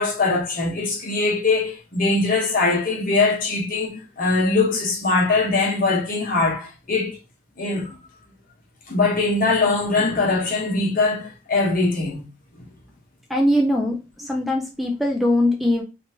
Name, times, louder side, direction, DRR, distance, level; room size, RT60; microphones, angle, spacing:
voice 1, 0.0-7.2 7.6-7.9 8.9-12.2 12.6-12.7, left 3 dB, 50° left, 1.2 m, -22 dB
voice 2, 13.3-15.8, left 1 dB, ahead, 0.4 m, -21 dB
3.3 x 2.9 x 2.8 m
head